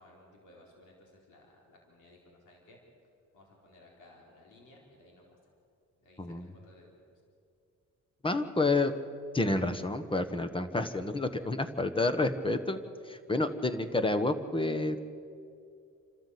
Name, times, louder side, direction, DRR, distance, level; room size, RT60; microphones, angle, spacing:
voice 1, 0.0-2.8 3.3-5.5 6.0-6.3 6.6-7.0 13.4-13.6, left 1 dB, 85° left, -1 dB, 4.3 m, -58 dB
voice 2, 8.2-8.9 9.3-12.8 13.1-15.1, left 2 dB, 15° left, 10 dB, 1.4 m, -29 dB
28.0 x 13.0 x 8.4 m, 2.4 s
cardioid pair, 90°, 30 cm